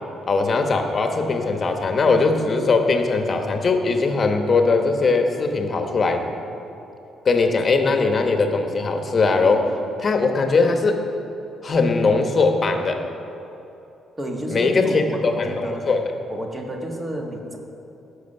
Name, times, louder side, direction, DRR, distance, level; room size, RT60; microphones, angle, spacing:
voice 1, 0.3-6.2 7.2-9.7 10.0-11.0 11.6-13.0 14.5-16.0, left 3 dB, 35° left, 5 dB, 1.1 m, -20 dB
voice 2, 14.2-15.9 16.3-17.6, right 1 dB, 20° right, 1 dB, 1.5 m, -30 dB
16.0 x 6.6 x 5.5 m, 2.9 s
cardioid pair, 115°, 0 cm